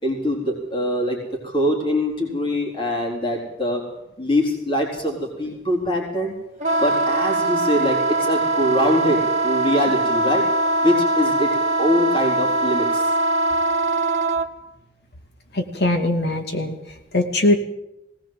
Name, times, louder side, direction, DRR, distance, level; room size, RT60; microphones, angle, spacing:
voice 1, 0.0-3.8 4.2-6.3 6.8-10.5 10.8-11.5 11.8-13.1, left 1 dB, 30° left, -1 dB, 4.1 m, -23 dB
Wind instrument woodwind instrument, 6.6-14.5, right 2 dB, 40° right, 1.5 m, -21 dB
voice 2, 15.5-17.6, left 2 dB, 65° left, 5 dB, 2.6 m, -21 dB
19.5 x 18.5 x 7.7 m, 0.91 s
head